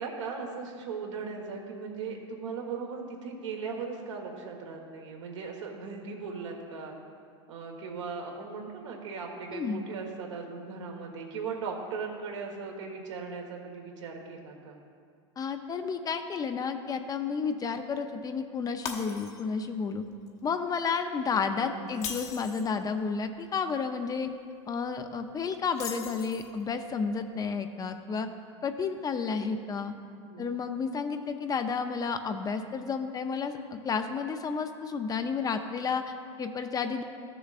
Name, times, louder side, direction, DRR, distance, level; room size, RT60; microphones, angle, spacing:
voice 1, 0.0-7.0 7.5-14.8 21.7-21.9 30.0-30.5, right 5 dB, 75° right, 1 dB, 1.4 m, -38 dB
voice 2, 9.5-9.8 15.4-20.0 20.4-24.3 24.7-28.3 28.6-29.9 30.4-33.6 33.8-37.0, left 5 dB, 25° left, 7 dB, 0.6 m, -31 dB
Shatter, 18.8-19.6 20.0-20.3 21.9-22.7 25.7-26.6, left 6 dB, 45° left, 1.1 m, -39 dB
14.0 x 6.8 x 2.5 m, 2.2 s
hypercardioid pair, 95°, 15 cm